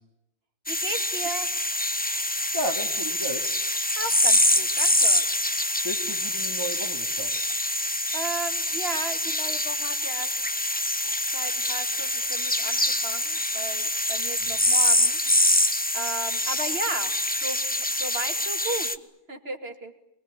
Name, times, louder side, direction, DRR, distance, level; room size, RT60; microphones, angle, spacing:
sound 1, 0.7-19.0, left 1 dB, 10° left, 1.0 m, -25 dB
voice 1, 0.7-1.5 4.0-5.2 8.1-10.3 11.3-15.2 15.5-15.7 15.9-18.9 19.3-19.9, right 3 dB, 50° right, 6 dB, 2.9 m, -35 dB
voice 2, 2.5-3.6 5.8-7.4 14.4-14.5, equal, 20° right, 5 dB, 2.7 m, -33 dB
26.5 x 22.5 x 9.9 m, 0.85 s
omnidirectional pair, 1.3 m